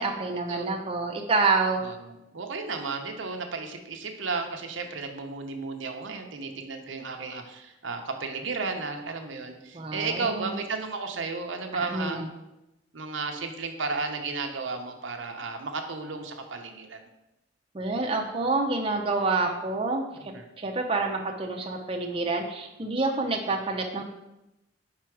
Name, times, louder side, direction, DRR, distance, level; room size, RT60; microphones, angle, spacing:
voice 1, 0.0-1.8 9.7-10.5 11.7-12.3 17.7-24.0, right 3 dB, 30° right, 1 dB, 0.6 m, -28 dB
voice 2, 1.8-12.2 12.9-17.1 20.1-20.4, right 4 dB, 80° right, 4 dB, 0.7 m, -34 dB
5.1 x 4.7 x 4.6 m, 0.94 s
head